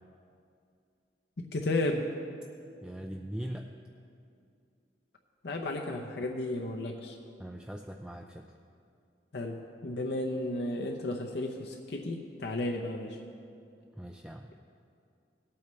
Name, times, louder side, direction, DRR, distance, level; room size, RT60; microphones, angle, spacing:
voice 1, 1.4-2.1 5.4-7.2 9.3-13.2, left 2 dB, 65° left, 1 dB, 0.7 m, -33 dB
voice 2, 2.8-3.7 7.4-8.5 14.0-14.5, equal, 5° right, 3 dB, 0.3 m, -41 dB
18.0 x 8.6 x 3.2 m, 2.4 s
head